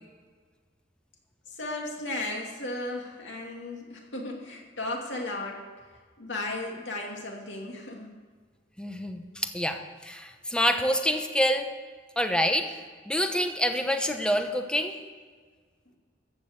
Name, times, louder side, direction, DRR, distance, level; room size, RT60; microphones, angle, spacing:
voice 1, 1.6-5.6 6.2-8.1, left 2 dB, 75° left, 0 dB, 2.5 m, -35 dB
voice 2, 8.8-11.7 12.2-12.7 13.1-15.0, equal, 5° left, 6 dB, 0.9 m, -27 dB
14.5 x 6.3 x 7.9 m, 1.5 s
head